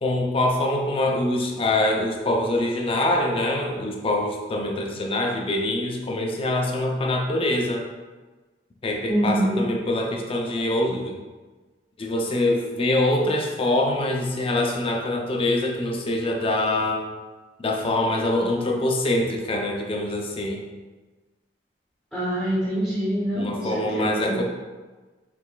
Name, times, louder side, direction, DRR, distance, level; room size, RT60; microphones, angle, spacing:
voice 1, 0.0-7.8 8.8-11.2 12.0-17.0 17.6-20.6 23.4-24.4, left 1 dB, 30° left, 1 dB, 0.5 m, -24 dB
voice 2, 9.1-9.7 22.1-24.3, right 1 dB, ahead, -9 dB, 0.8 m, -25 dB
4.6 x 3.3 x 2.2 m, 1.3 s
head